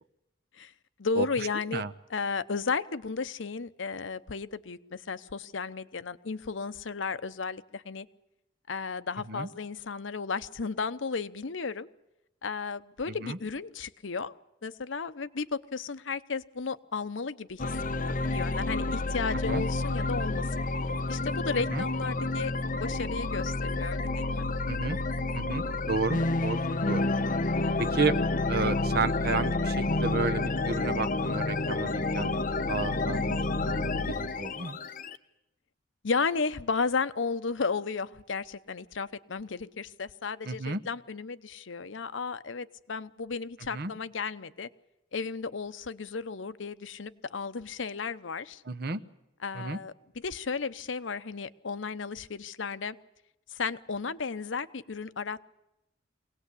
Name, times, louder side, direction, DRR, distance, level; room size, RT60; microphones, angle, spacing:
voice 1, 1.0-1.8 2.1-8.1 8.7-11.9 12.4-14.3 14.6-17.7 18.0-20.5 21.1-24.5 27.6-27.9 32.9-33.2 36.0-44.7 45.1-48.6 49.4-53.0 53.5-55.4, left 4 dB, 80° left, 13 dB, 0.8 m, -34 dB
sound 1, 17.6-35.2, left 2 dB, 45° left, 0.9 m, -29 dB
voice 2, 25.3-26.6 26.9-27.1 27.8-28.1 28.5-34.8 40.5-40.8 43.7-43.9 48.7-49.0 49.5-49.8, right 3 dB, 55° right, 11 dB, 0.9 m, -32 dB
23.5 x 18.0 x 8.4 m, 0.91 s
head